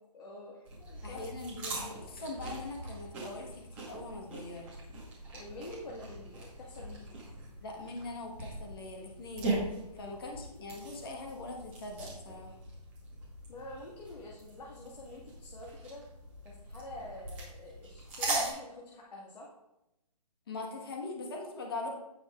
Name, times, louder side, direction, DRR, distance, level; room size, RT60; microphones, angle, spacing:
voice 1, 0.1-1.3 5.3-7.2 9.9-10.2 13.5-16.0 16.4-19.5, left 2 dB, 75° left, -3 dB, 1.9 m, -47 dB
sound 1, 0.7-18.5, right 2 dB, 10° right, 1.3 m, -41 dB
voice 2, 1.0-4.8 7.6-12.6 20.5-21.9, left 2 dB, 35° left, 0 dB, 1.4 m, -42 dB
16.0 x 5.3 x 2.5 m, 0.90 s
hypercardioid pair, 175°, 21 cm